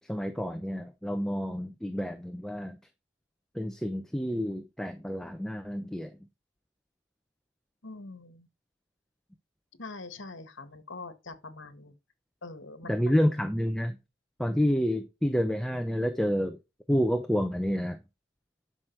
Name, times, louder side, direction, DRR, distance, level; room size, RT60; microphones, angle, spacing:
voice 1, 0.1-2.8 3.5-6.1 12.9-14.0 14.4-16.6 16.9-18.0, equal, 5° left, 0.7 m, -29 dB
voice 2, 7.8-8.5 9.8-11.9 12.4-13.1, left 3 dB, 65° left, 1.8 m, -43 dB
11.0 x 6.3 x 4.6 m
head